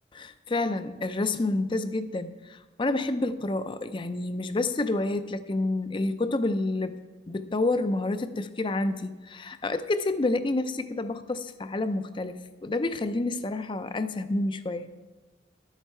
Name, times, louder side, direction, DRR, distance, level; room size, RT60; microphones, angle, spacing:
voice 1, 0.1-7.0 7.3-14.9, left 2 dB, 30° left, 11 dB, 0.5 m, -29 dB
12.0 x 8.1 x 4.4 m, 1.2 s
head